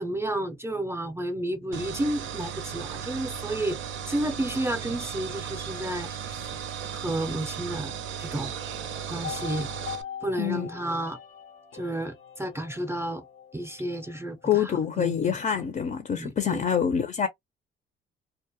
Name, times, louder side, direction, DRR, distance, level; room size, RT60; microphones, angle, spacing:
voice 1, 0.0-3.8 4.1-6.5 7.0-8.5 9.1-9.7 10.2-11.2 11.7-13.2 13.5-15.4 16.1-16.6, right 1 dB, 15° right, 0.5 m, -31 dB
sound 1, 1.7-10.0, right 8 dB, 80° right, 0.5 m, -36 dB
sound 2, 8.5-14.8 15.1-15.2, left 8 dB, 85° left, 0.6 m, -43 dB
voice 2, 10.4-10.7 14.4-17.3, left 8 dB, 40° left, 0.5 m, -26 dB
2.2 x 2.1 x 2.7 m
cardioid pair, 90°, 20 cm